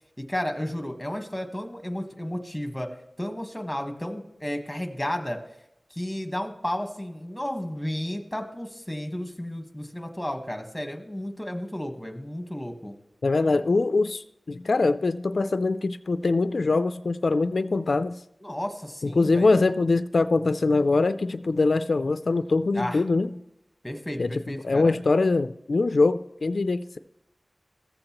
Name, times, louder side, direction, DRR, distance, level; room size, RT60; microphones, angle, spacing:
voice 1, 0.2-2.9 3.2-5.4 5.9-12.9 18.4-19.5 22.7-23.0 23.8-24.9, left 1 dB, 10° left, 5 dB, 1.3 m, -33 dB
voice 2, 13.2-18.2 19.2-23.3 24.2-27.0, left 3 dB, 80° left, 11 dB, 0.3 m, -23 dB
14.5 x 7.8 x 2.9 m, 0.85 s
wide cardioid pair, 70°, 0 cm